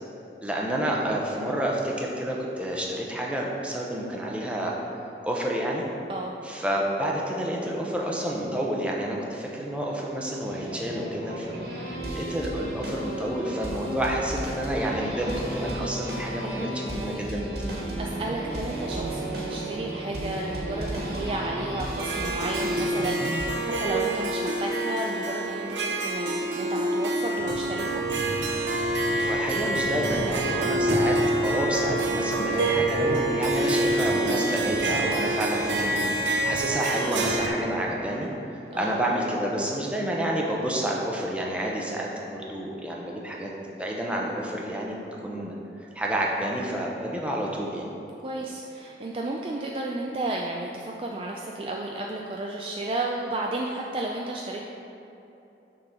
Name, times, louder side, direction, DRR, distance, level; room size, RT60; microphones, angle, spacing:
voice 1, 0.4-4.7 5.2-5.8 6.4-11.5 12.1-17.6 29.2-31.2 31.4-36.0 36.2-45.6 45.9-47.8, right 1 dB, 5° right, -3 dB, 0.7 m, -29 dB
sound 1, 10.4-23.5, right 1 dB, 65° right, 1.5 m, -33 dB
voice 2, 16.4-17.2 18.0-28.0 38.7-39.0 48.2-54.6, right 2 dB, 30° right, -1 dB, 0.3 m, -33 dB
Harp, 22.0-37.5, right 1 dB, 85° right, 0.7 m, -27 dB
sound 2, 27.4-38.3, equal, 40° left, 1.5 m, -37 dB
6.5 x 3.8 x 5.8 m, 3.0 s
head